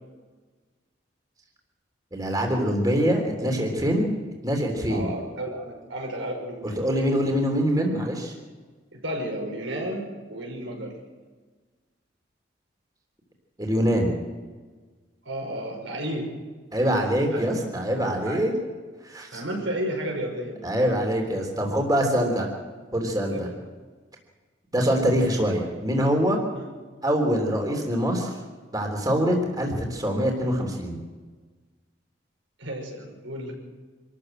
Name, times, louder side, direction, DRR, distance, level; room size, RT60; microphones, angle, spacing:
voice 1, 2.1-4.1 4.4-5.1 6.6-8.3 13.6-14.1 16.7-18.5 19.0-19.4 20.6-22.5 22.9-23.5 24.7-26.4 27.0-28.3 28.7-31.0, equal, 20° right, 1 dB, 3.4 m, -24 dB
voice 2, 4.9-6.8 8.9-10.9 15.3-16.3 17.3-17.4 18.3-18.4 19.3-20.7 23.3-23.6 26.6-26.7 32.6-33.5, right 1 dB, 85° right, 1 dB, 5.9 m, -32 dB
26.0 x 14.0 x 7.9 m, 1.4 s
head